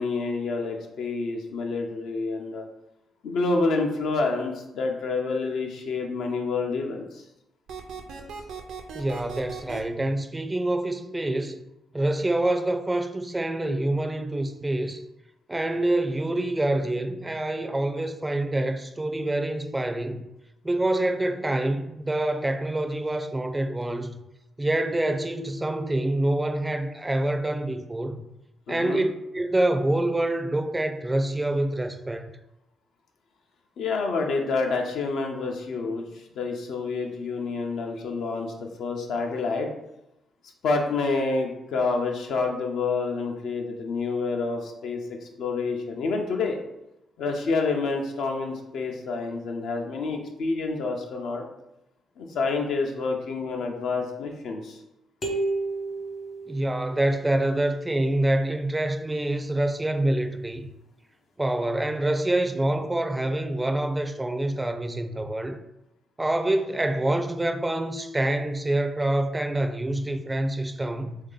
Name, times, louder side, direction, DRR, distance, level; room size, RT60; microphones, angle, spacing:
voice 1, 0.0-2.6 3.2-7.2 28.7-29.0 33.8-36.1 36.4-39.7 40.6-45.0 45.4-46.6 47.2-51.4 52.2-54.8, left 3 dB, 75° left, 0.6 m, -28 dB
sound 1, 7.7-9.8, right 5 dB, 80° right, 0.5 m, -38 dB
voice 2, 8.9-11.6 11.9-15.0 15.5-20.3 20.6-24.1 24.6-28.2 28.7-32.3 56.5-60.7 61.4-65.6 66.2-71.2, right 1 dB, 20° right, 0.4 m, -26 dB
sound 2, 55.2-57.1, right 2 dB, 50° left, 0.9 m, -31 dB
3.2 x 2.7 x 3.7 m
supercardioid pair, 60°, 0 cm